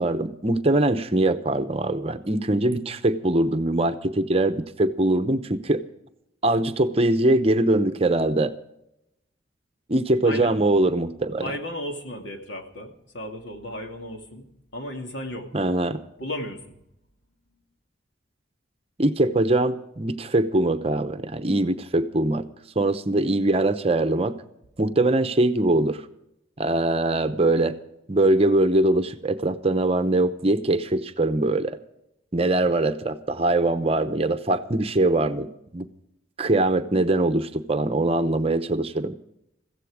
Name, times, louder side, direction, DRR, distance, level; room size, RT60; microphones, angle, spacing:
voice 1, 0.0-5.8 6.4-8.5 9.9-11.5 15.5-16.0 19.0-22.4 22.8-24.4 24.8-26.0 26.6-27.8 28.1-31.8 32.3-35.9 36.4-39.1, right 2 dB, 30° right, 10 dB, 0.8 m, -22 dB
voice 2, 10.2-10.6 11.4-15.5 16.2-16.8, left 1 dB, 75° left, 3 dB, 2.4 m, -35 dB
15.5 x 15.0 x 4.9 m, 0.80 s
head